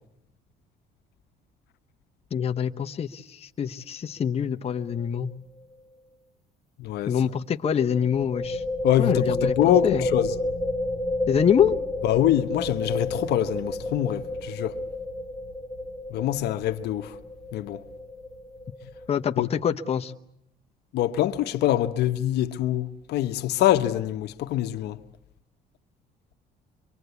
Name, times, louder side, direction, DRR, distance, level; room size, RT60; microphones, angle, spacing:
voice 1, 2.3-5.3 7.1-8.6 9.0-10.0 11.3-11.7 19.1-20.1, left 8 dB, 35° left, 1.0 m, -25 dB
sound 1, 4.8-5.1 5.3-5.4 7.9-19.3, left 1 dB, ahead, 2.0 m, -31 dB
voice 2, 6.8-7.2 8.8-10.3 12.0-14.8 16.1-17.2 17.5-17.8 19.4-19.5 20.9-25.0, left 13 dB, 75° left, 1.1 m, -24 dB
26.0 x 24.0 x 8.3 m
cardioid pair, 110°, 17 cm